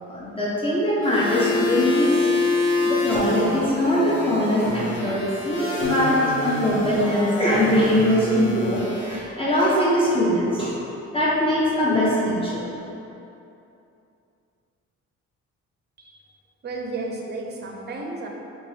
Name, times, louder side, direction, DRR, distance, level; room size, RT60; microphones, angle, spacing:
voice 1, 0.1-2.3 2.8-10.7 11.1-12.6, left 1 dB, 20° left, -8 dB, 0.6 m, -22 dB
sound 1, 1.0-9.2, left 2 dB, 40° left, 0.9 m, -26 dB
voice 2, 16.6-18.3, right 3 dB, 35° right, 0 dB, 0.5 m, -32 dB
3.9 x 2.3 x 3.2 m, 2.8 s
cardioid pair, 90°, 30 cm